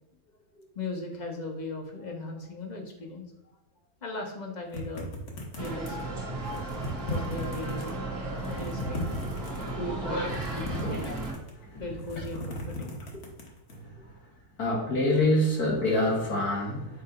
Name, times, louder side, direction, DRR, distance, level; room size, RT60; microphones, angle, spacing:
voice 1, 0.5-3.3 4.0-5.1 5.5-6.2 7.1-8.0 8.5-9.2 9.7-11.1 11.8-13.2, left 2 dB, 35° left, 1 dB, 0.9 m, -38 dB
sound 1, 4.7-6.1 6.4-7.9 8.3-9.7 10.2-11.6 11.9-13.7, left 1 dB, 50° left, 1.4 m, -37 dB
sound 2, 5.6-11.3, right 2 dB, 55° right, 1.8 m, -35 dB
voice 2, 10.8-11.1 11.6-11.8 13.7-13.9 14.6-17.0, left 1 dB, 75° left, -2 dB, 2.0 m, -26 dB
7.7 x 2.7 x 4.8 m, 0.96 s
omnidirectional pair, 1.6 m